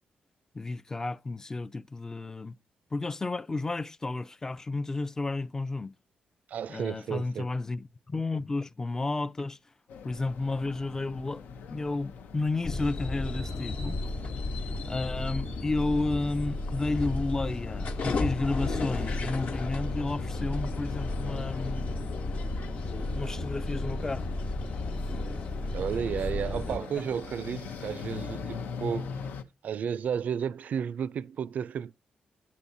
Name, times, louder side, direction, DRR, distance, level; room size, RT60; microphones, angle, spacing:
voice 1, 0.5-2.6 2.9-5.9 6.7-9.6 10.0-11.4 11.7-14.0 14.9-21.9 23.1-24.3 26.7-26.9, left 3 dB, 20° left, 0.4 m, -32 dB
voice 2, 6.5-7.5 25.7-29.2 29.6-31.9, right 8 dB, 65° right, 0.4 m, -33 dB
sound 1, 9.9-29.4, left 5 dB, 85° left, 0.7 m, -42 dB
sound 2, 12.6-26.8, left 2 dB, 60° left, 1.1 m, -33 dB
9.6 x 8.5 x 2.6 m
cardioid pair, 120°, 3 cm